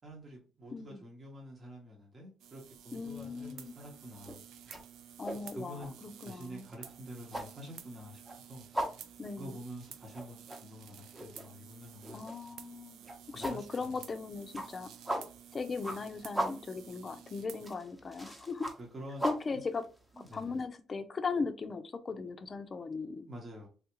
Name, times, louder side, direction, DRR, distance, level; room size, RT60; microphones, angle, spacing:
voice 1, 0.0-4.4 5.5-5.9 6.2-8.2 8.5-8.7 9.3-12.2 13.3-13.9 18.8-19.6 20.1-20.5 23.3-23.7, equal, 40° right, 1.1 m, -47 dB
voice 2, 0.7-1.0 2.9-3.7 5.2-6.7 9.2-9.6 12.1-13.0 13.3-15.2 15.5-18.7 19.2-19.8 20.2-23.3, left 4 dB, 35° left, 0.5 m, -38 dB
sound 1, 2.4-17.7, right 9 dB, 85° right, 0.3 m, -53 dB
sound 2, 3.0-3.4 3.7-20.6, right 1 dB, 10° right, 0.9 m, -40 dB
3.5 x 2.3 x 2.9 m
cardioid pair, 90°, 0 cm